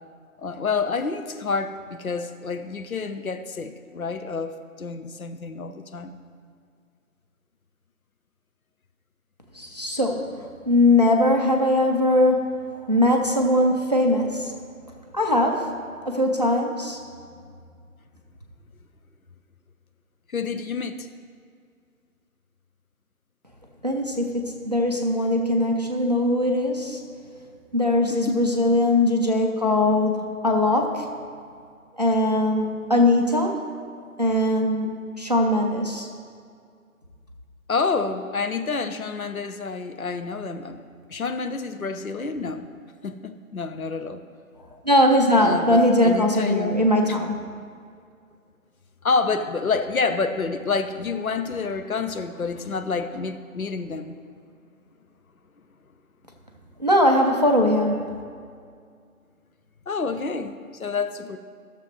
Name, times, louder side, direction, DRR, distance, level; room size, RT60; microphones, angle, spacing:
voice 1, 0.4-6.2 20.3-21.1 28.1-28.5 37.7-40.8 41.1-42.7 43.0-44.2 45.4-46.8 47.1-47.2 49.0-54.2 59.9-61.4, left 4 dB, 75° left, 9 dB, 0.7 m, -28 dB
voice 2, 9.5-10.2 10.7-14.5 15.1-17.0 23.8-27.0 27.7-31.1 32.0-33.6 34.2-36.1 44.8-47.4 56.8-58.0, left 1 dB, 30° right, 2 dB, 0.6 m, -21 dB
14.0 x 6.8 x 3.1 m, 2.2 s
figure-of-eight pair, 155°, 43 cm